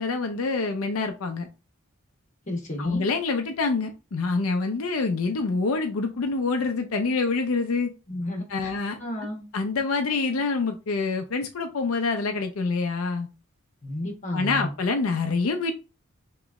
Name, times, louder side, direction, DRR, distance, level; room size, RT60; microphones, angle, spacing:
voice 1, 0.0-1.5 2.8-7.9 8.5-9.0 9.5-13.3 14.3-15.7, left 4 dB, 80° left, 5 dB, 0.5 m, -26 dB
voice 2, 2.5-3.1 8.1-8.7 9.0-9.5 13.8-14.7, left 1 dB, 35° left, 1 dB, 1.2 m, -32 dB
3.0 x 3.0 x 3.5 m, 0.30 s
head